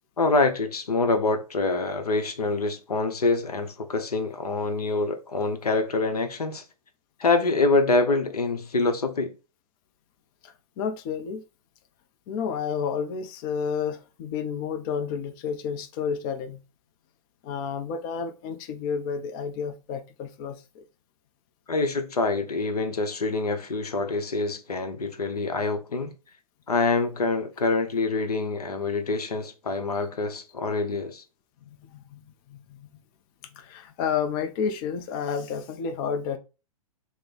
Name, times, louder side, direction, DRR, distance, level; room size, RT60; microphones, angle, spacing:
voice 1, 0.2-6.6 7.2-9.4 21.7-26.1 26.7-31.2, left 3 dB, 90° left, 0.6 m, -25 dB
voice 2, 10.8-11.4 12.3-16.6 17.4-20.6 31.9-32.2 32.5-32.6 33.6-36.4, left 6 dB, 35° left, 0.4 m, -30 dB
3.1 x 2.0 x 4.0 m
hypercardioid pair, 115°, 19 cm